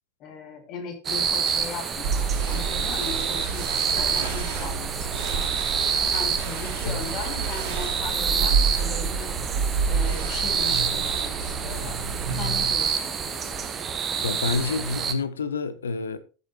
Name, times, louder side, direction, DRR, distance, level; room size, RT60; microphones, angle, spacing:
voice 1, 0.2-5.6 6.1-9.4 9.8-12.0 12.4-13.6, left 5 dB, 35° left, 2.3 m, -38 dB
sound 1, 1.0-15.1, right 6 dB, 25° right, 1.2 m, -28 dB
sound 2, 2.0-12.7, right 5 dB, 50° right, 3.2 m, -29 dB
voice 2, 14.2-16.2, left 4 dB, 70° left, 0.8 m, -28 dB
14.0 x 6.9 x 2.9 m
figure-of-eight pair, 90°, 0 cm